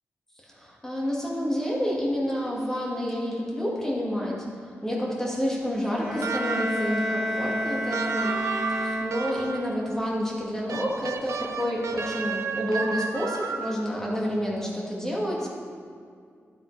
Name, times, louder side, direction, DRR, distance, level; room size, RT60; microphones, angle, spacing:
voice 1, 0.4-4.5 4.8-8.4 8.7-15.5, equal, 10° left, -4 dB, 1.8 m, -29 dB
sound 1, 5.9-9.8, equal, 10° right, 1.7 m, -30 dB
sound 2, 6.2-6.9 7.9-9.7 10.7-13.9, right 5 dB, 75° right, 0.6 m, -32 dB
11.5 x 8.8 x 3.2 m, 2.2 s
wide cardioid pair, 145°, 5 cm